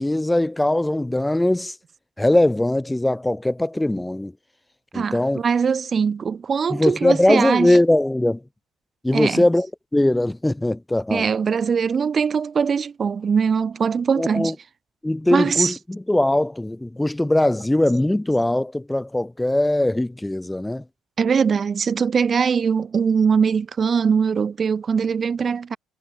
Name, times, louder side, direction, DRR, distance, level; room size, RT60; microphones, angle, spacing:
voice 1, 0.0-1.7 2.2-4.3 4.9-5.4 6.7-8.4 9.0-9.7 9.9-11.3 14.2-14.5 15.0-20.8, left 1 dB, 10° left, 1.5 m, -20 dB
voice 2, 4.9-7.8 9.1-9.4 11.1-14.5 15.3-15.7 21.2-25.8, right 6 dB, 40° right, 1.6 m, -21 dB
hypercardioid pair, 65°, 0 cm